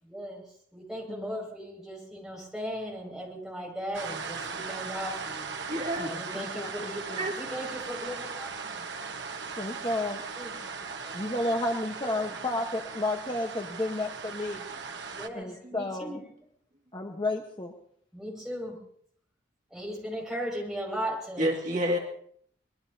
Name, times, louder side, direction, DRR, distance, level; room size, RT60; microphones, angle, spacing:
voice 1, 0.0-5.5 6.1-7.0 7.4-8.9 10.4-10.6 11.0-11.2 12.0-12.4 15.1-16.2 18.1-18.8 19.7-21.5, equal, 5° right, -2 dB, 5.8 m, -37 dB
sound 1, 3.9-15.3, right 5 dB, 70° right, 1.2 m, -38 dB
voice 2, 5.7-6.1 6.9-7.3 15.6-15.8 21.4-22.0, equal, 40° right, 0 dB, 2.0 m, -29 dB
voice 3, 6.4-7.3 9.6-10.2 11.1-14.6 15.3-16.2 16.9-17.7, left 1 dB, 25° left, 2 dB, 1.1 m, -32 dB
25.0 x 21.0 x 2.8 m, 0.65 s
head